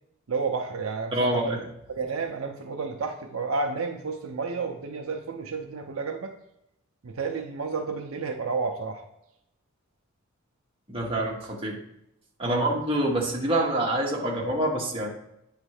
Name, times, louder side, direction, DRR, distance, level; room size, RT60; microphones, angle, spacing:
voice 1, 0.3-1.6 2.0-6.3 7.0-9.0 12.4-12.7, right 4 dB, 75° right, 4 dB, 0.6 m, -31 dB
voice 2, 1.1-1.7 10.9-11.8 12.4-15.1, right 1 dB, 25° right, -2 dB, 1.2 m, -26 dB
8.8 x 3.3 x 4.8 m, 0.82 s
head